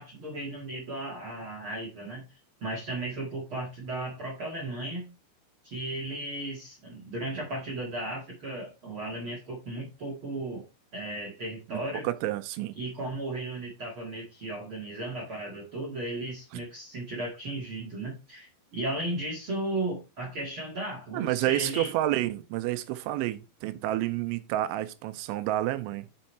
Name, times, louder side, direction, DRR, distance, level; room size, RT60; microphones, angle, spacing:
voice 1, 0.0-2.2 2.6-5.1 5.6-10.6 10.9-12.1 12.8-21.9, right 2 dB, 50° right, 1.5 m, -35 dB
voice 2, 11.7-12.8 16.5-16.6 21.1-26.1, right 15 dB, 85° right, 3.1 m, -29 dB
6.8 x 5.4 x 4.3 m
omnidirectional pair, 5.4 m